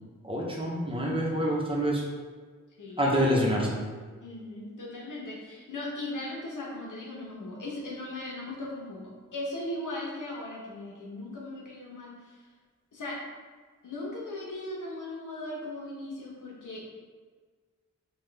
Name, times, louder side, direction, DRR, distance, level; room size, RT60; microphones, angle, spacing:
voice 1, 0.2-2.0 3.0-3.8, equal, 15° right, -4 dB, 0.9 m, -26 dB
voice 2, 2.8-3.5 4.2-12.5 12.9-13.2 13.8-16.8, left 1 dB, 85° left, -4 dB, 1.0 m, -38 dB
5.5 x 2.4 x 3.4 m, 1.5 s
wide cardioid pair, 110°, 30 cm